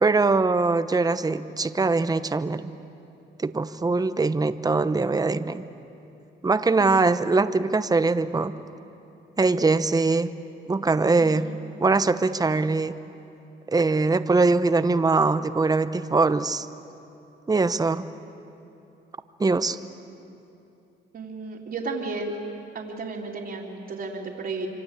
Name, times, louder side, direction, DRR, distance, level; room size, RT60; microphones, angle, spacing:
voice 1, 0.0-2.7 3.4-5.6 6.4-8.5 9.4-10.3 10.7-11.5 11.8-13.0 13.7-16.7 17.5-18.1 19.4-19.8, right 3 dB, 20° right, 11 dB, 0.9 m, -22 dB
voice 2, 11.2-11.6 21.1-22.3 22.7-24.7, right 3 dB, 55° right, -6 dB, 3.3 m, -33 dB
27.0 x 24.5 x 8.3 m, 2.8 s
cardioid pair, 90°, 20 cm